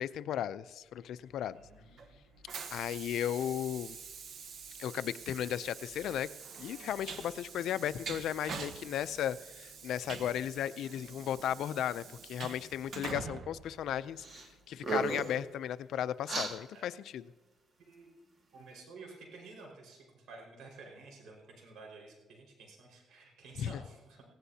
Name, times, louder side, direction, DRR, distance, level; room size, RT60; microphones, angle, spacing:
voice 1, 0.0-1.6 2.7-4.0 4.8-6.3 6.6-17.2 23.6-23.8, left 10 dB, 75° left, 14 dB, 0.5 m, -35 dB
Train, 1.3-14.5, right 5 dB, 60° right, 1.2 m, -46 dB
voice 2, 1.5-2.2 16.7-16.8 17.8-18.1 18.5-24.2, right 3 dB, 80° right, 0 dB, 5.0 m, -52 dB
sound 1, 14.2-14.5 14.8-15.4 16.3-16.5, right 3 dB, 45° right, 2.1 m, -34 dB
18.5 x 16.5 x 2.8 m, 1.2 s
cardioid pair, 90°, 0 cm